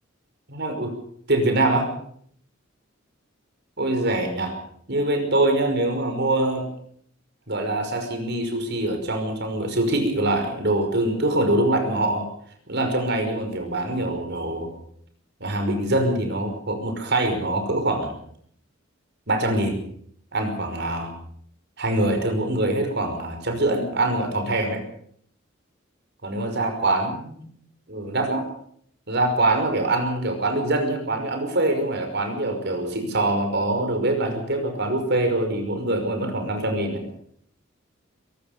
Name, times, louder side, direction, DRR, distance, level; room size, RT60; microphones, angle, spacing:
voice 1, 0.5-0.9 1.3-1.9 3.8-4.5 4.9-6.6 7.5-12.3 12.7-14.7 15.4-18.2 19.3-19.8 20.3-21.1 21.8-24.8 26.2-27.4 27.9-28.4 29.1-37.0, right 2 dB, 55° right, 6 dB, 5.6 m, -24 dB
23.5 x 17.5 x 6.8 m, 0.65 s
head